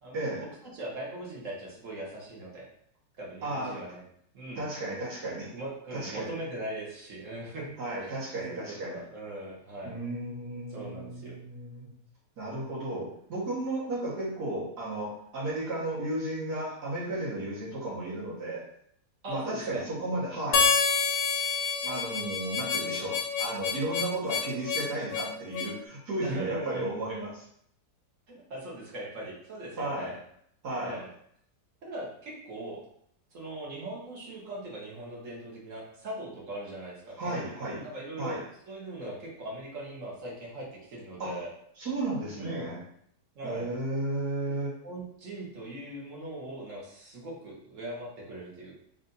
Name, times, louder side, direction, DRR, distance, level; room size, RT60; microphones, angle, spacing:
voice 1, 0.1-0.5 3.4-3.8 4.6-5.5 5.9-6.3 7.8-9.0 9.8-11.9 12.4-18.7 19.3-20.7 21.8-27.4 29.8-30.1 30.6-31.0 37.2-37.9 38.2-38.4 41.2-41.4 41.8-42.8 43.4-44.8, right 2 dB, 70° right, -6 dB, 2.0 m, -34 dB
voice 2, 0.7-2.7 3.2-4.0 4.3-4.6 5.5-7.7 8.0-10.0 10.7-11.4 19.2-19.9 26.2-26.9 28.3-30.2 30.8-31.1 31.8-32.8 33.3-38.4 38.6-41.5 42.4-42.7 43.3-43.7 44.4-44.6 44.8-48.8, right 1 dB, 50° right, -4 dB, 1.5 m, -40 dB
Harmonica, 20.5-25.8, left 5 dB, 70° left, 0.9 m, -28 dB
4.1 x 2.6 x 3.9 m, 0.67 s
omnidirectional pair, 1.8 m